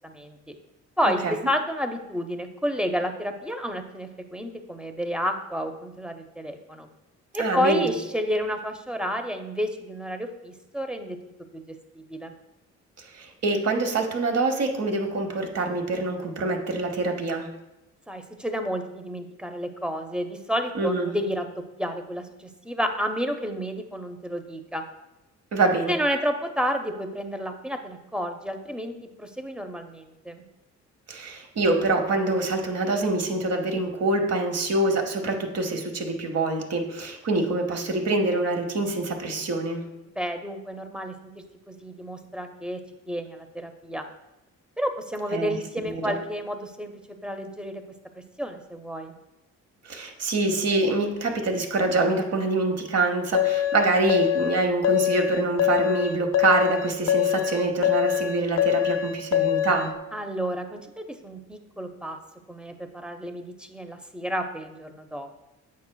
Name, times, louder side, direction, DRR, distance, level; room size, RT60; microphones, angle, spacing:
voice 1, 0.0-0.5 1.0-6.9 7.3-11.2 11.5-12.3 18.1-21.5 21.8-24.8 25.9-30.4 40.2-41.1 41.7-42.8 43.1-44.1 44.8-46.9 47.2-47.8 48.4-49.1 60.1-62.2 62.5-65.3, equal, 5° right, 5 dB, 0.6 m, -30 dB
voice 2, 7.4-7.9 13.0-17.5 20.7-21.1 25.5-26.0 31.1-39.8 45.3-45.6 45.8-46.1 49.8-59.9, right 2 dB, 55° right, 3 dB, 1.0 m, -25 dB
sound 1, 53.3-59.9, left 11 dB, 60° left, 0.5 m, -24 dB
8.4 x 5.3 x 2.2 m, 0.94 s
cardioid pair, 90°, 30 cm